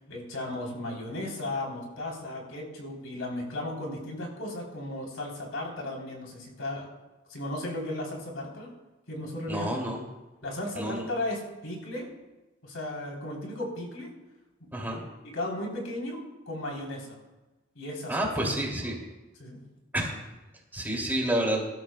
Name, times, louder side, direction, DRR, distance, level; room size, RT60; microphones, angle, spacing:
voice 1, 0.1-6.9 7.3-8.7 9.1-9.8 10.4-12.1 12.6-14.1 15.2-16.2 16.5-17.2 17.7-18.5 19.4-19.6, left 1 dB, 85° left, -1 dB, 3.5 m, -35 dB
voice 2, 9.5-10.0 10.7-11.1 14.7-15.0 18.1-19.0 19.9-20.2 20.7-21.6, right 1 dB, 10° right, -2 dB, 2.5 m, -29 dB
22.0 x 12.5 x 2.2 m, 1.1 s
head